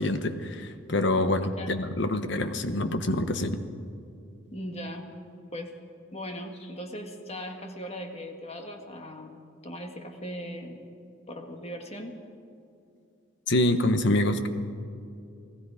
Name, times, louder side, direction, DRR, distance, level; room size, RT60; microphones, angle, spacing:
voice 1, 0.0-3.6 13.5-14.5, left 1 dB, 60° left, 9 dB, 1.2 m, -26 dB
voice 2, 4.5-5.2 5.5-5.7 6.1-10.9 11.3-12.2, equal, 30° left, 4 dB, 1.8 m, -39 dB
29.0 x 18.5 x 5.1 m, 2.5 s
head